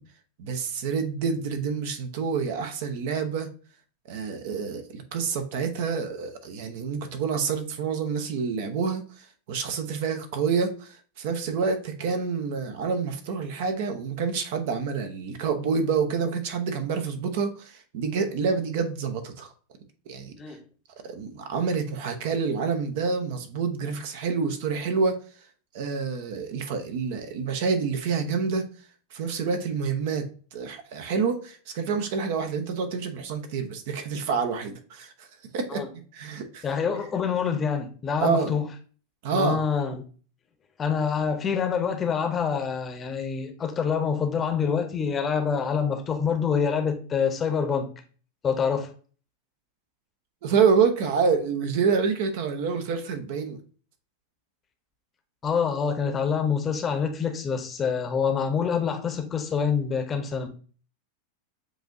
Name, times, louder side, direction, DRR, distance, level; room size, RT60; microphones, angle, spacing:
voice 1, 0.4-3.5 4.1-9.0 9.5-19.5 20.1-20.3 21.0-25.2 25.7-28.7 29.1-35.3 35.5-36.7 38.2-38.5 39.2-39.6 50.4-53.6, right 5 dB, 50° right, 0.7 m, -27 dB
voice 2, 36.6-38.7 39.3-40.0 40.8-47.9 48.4-48.9 55.4-60.5, left 6 dB, 20° left, 0.8 m, -26 dB
7.6 x 2.6 x 2.6 m
figure-of-eight pair, 90°, 0 cm